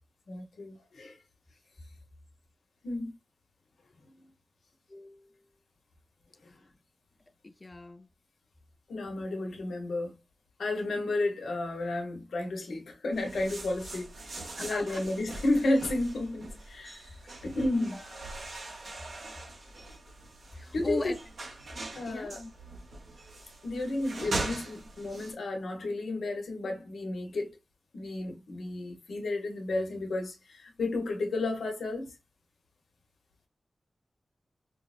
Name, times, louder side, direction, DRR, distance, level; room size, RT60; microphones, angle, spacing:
voice 1, 0.3-1.2 2.8-3.1 8.9-10.2 10.6-14.1 14.6-17.0 17.4-18.0 20.7-21.1 21.9-22.4 23.6-27.5 27.9-32.1, left 2 dB, 85° left, 0.8 m, -32 dB
voice 2, 4.9-5.4 7.4-8.1 14.6-15.0 17.2-17.5 17.8-18.0 20.6-21.2 22.1-22.5, left 2 dB, 40° left, 0.5 m, -39 dB
sound 1, 13.1-25.3, right 2 dB, 80° right, 0.9 m, -41 dB
4.6 x 2.0 x 2.4 m
cardioid pair, 40°, 0 cm